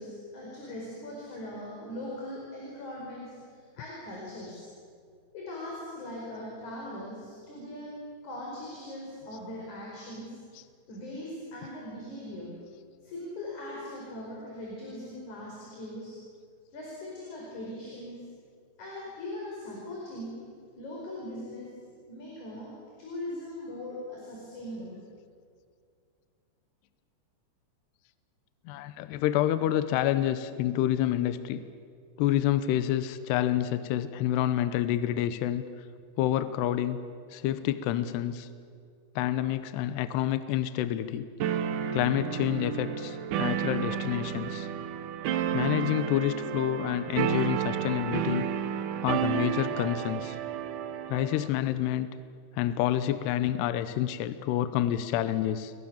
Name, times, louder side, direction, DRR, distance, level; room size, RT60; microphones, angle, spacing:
voice 1, 0.0-4.7 5.3-7.9 8.2-10.3 10.9-12.5 13.0-16.2 16.7-18.2 18.8-20.4 20.8-21.7 22.1-22.7 23.0-25.0, left 1 dB, 40° left, -3 dB, 6.1 m, -40 dB
voice 2, 28.7-31.6 32.2-35.6 36.2-37.0 37.3-38.5 39.2-41.3 41.9-44.7 45.5-48.5 49.0-50.4 51.1-52.1 52.6-55.7, left 12 dB, 75° left, 12 dB, 2.8 m, -28 dB
sound 1, 41.4-51.5, right 9 dB, 85° right, 1.8 m, -31 dB
29.5 x 23.0 x 7.2 m, 2.2 s
omnidirectional pair, 5.3 m